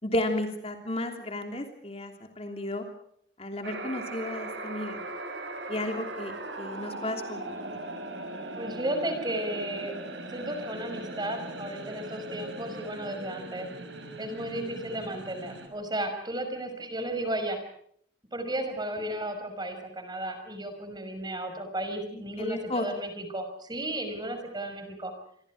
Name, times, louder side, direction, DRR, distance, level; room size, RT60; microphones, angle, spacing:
voice 1, 0.0-2.8 3.4-5.0 5.7-6.3 6.6-7.6 22.1-22.9, left 1 dB, 35° left, 5 dB, 3.1 m, -33 dB
sound 1, 3.6-15.7, right 2 dB, 80° right, 5.7 m, -39 dB
voice 2, 8.6-9.9 10.3-13.7 14.2-17.6 18.3-25.1, right 1 dB, 25° right, 7 dB, 5.7 m, -34 dB
27.5 x 24.0 x 4.9 m, 0.65 s
head